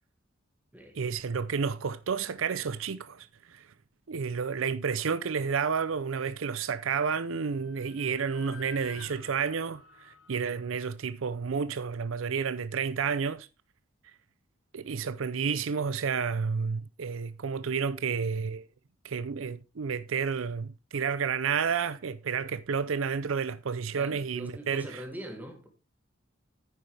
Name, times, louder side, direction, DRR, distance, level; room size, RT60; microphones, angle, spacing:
voice 1, 0.9-3.7 4.1-13.5 14.7-18.7 19.0-24.9, right 6 dB, 80° right, 0.5 m, -31 dB
sound 1, 7.2-11.4, left 4 dB, 85° left, 3.3 m, -51 dB
voice 2, 23.9-25.7, equal, 10° right, 2.1 m, -43 dB
9.6 x 9.3 x 3.4 m
head